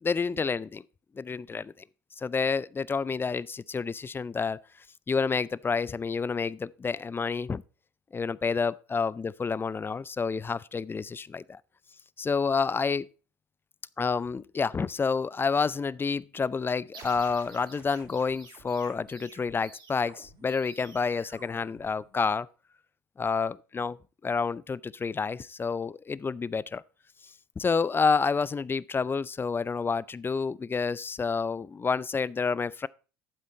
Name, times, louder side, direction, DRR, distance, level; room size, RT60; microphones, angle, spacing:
voice 1, 0.0-0.8 1.2-1.7 2.2-4.6 5.1-7.6 8.1-11.6 12.2-13.1 14.0-22.5 23.2-24.0 24.2-26.8 27.6-32.9, left 5 dB, 20° left, 0.4 m, -29 dB
sound 1, 16.9-22.4, right 3 dB, 55° right, 5.2 m, -51 dB
12.0 x 7.5 x 4.2 m
hypercardioid pair, 65°, 10 cm